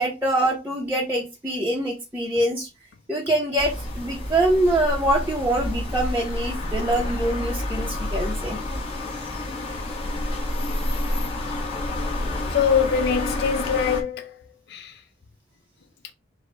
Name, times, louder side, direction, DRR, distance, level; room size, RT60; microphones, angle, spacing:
voice 1, 0.0-2.7 3.1-8.6, right 1 dB, 10° right, 0.9 m, -24 dB
sound 1, 3.6-14.0, left 1 dB, 30° left, 1.3 m, -29 dB
voice 2, 12.5-14.4 14.7-15.0, left 7 dB, 60° left, 0.5 m, -23 dB
4.9 x 2.3 x 4.0 m
head